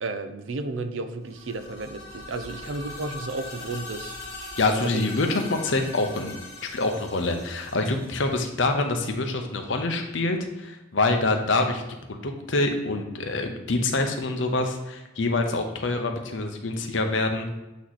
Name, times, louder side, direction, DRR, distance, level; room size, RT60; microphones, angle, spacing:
voice 1, 0.0-4.2 4.8-5.0, right 3 dB, 80° right, 8 dB, 0.6 m, -33 dB
sound 1, 1.2-9.0, left 2 dB, 20° left, 2.0 m, -41 dB
voice 2, 4.6-11.8 12.1-17.5, left 2 dB, 75° left, 5 dB, 0.9 m, -26 dB
8.3 x 3.0 x 4.1 m, 1.0 s
head